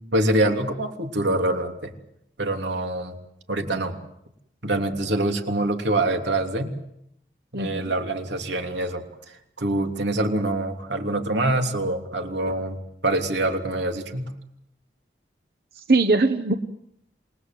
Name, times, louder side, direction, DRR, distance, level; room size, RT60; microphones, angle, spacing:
voice 1, 0.1-1.9 2.4-3.2 3.5-3.9 4.6-6.8 7.5-14.3, right 1 dB, 90° right, 4 dB, 3.2 m, -25 dB
voice 2, 7.5-7.9 15.7-16.5, right 3 dB, 60° right, 8 dB, 1.1 m, -21 dB
28.0 x 20.0 x 7.8 m, 0.77 s
head